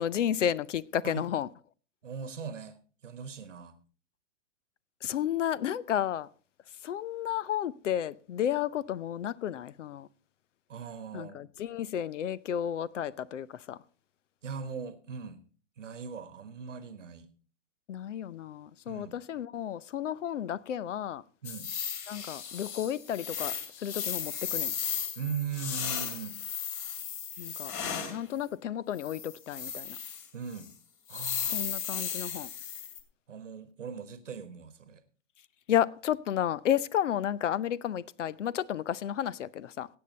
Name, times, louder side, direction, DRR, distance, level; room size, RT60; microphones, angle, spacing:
voice 1, 0.0-1.5 5.0-6.3 6.8-10.1 11.1-13.8 17.9-21.2 22.1-24.7 27.4-27.7 28.1-30.0 31.5-32.5 35.7-39.9, left 10 dB, 80° left, 0.7 m, -32 dB
voice 2, 2.0-2.8 3.0-3.8 10.7-11.5 14.4-15.4 15.8-17.3 18.9-19.2 21.4-21.7 25.2-26.4 30.3-30.7 31.1-31.6 33.3-35.0, right 6 dB, 85° right, 1.4 m, -39 dB
sound 1, 21.4-28.2 29.0-30.3 30.6-30.7 31.1-33.0, left 7 dB, 45° left, 2.5 m, -35 dB
15.5 x 8.7 x 4.2 m
hypercardioid pair, 120°, 36 cm